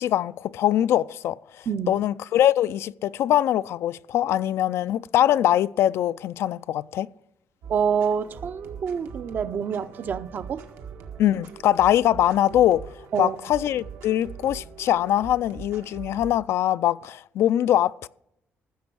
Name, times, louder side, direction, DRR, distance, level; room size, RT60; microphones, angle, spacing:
voice 1, 0.0-1.4 1.9-7.1 11.2-12.9 13.2-18.1, left 12 dB, 70° left, 0.3 m, -22 dB
voice 2, 1.7-2.0 7.7-10.7 13.1-13.4, right 7 dB, 45° right, 0.6 m, -27 dB
sound 1, 7.6-16.4, right 7 dB, 85° right, 1.7 m, -42 dB
15.0 x 6.7 x 6.1 m
cardioid pair, 145°, 5 cm